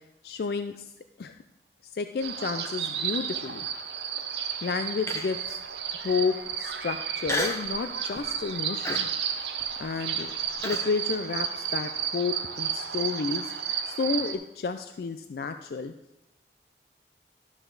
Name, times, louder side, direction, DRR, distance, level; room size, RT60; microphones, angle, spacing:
voice 1, 0.2-0.9 1.2-1.3 1.9-3.7 4.6-5.6 6.0-9.1 9.8-10.3 10.6-13.5 13.8-15.9, left 4 dB, 60° left, 9 dB, 0.3 m, -31 dB
sound 1, 2.2-14.3, right 8 dB, 80° right, 0.8 m, -32 dB
Human voice, 5.1-5.5 6.1-6.2 7.3-7.7 8.2-8.4 8.9-10.9, left 2 dB, 15° left, 0.7 m, -33 dB
12.0 x 6.1 x 3.9 m, 0.92 s
head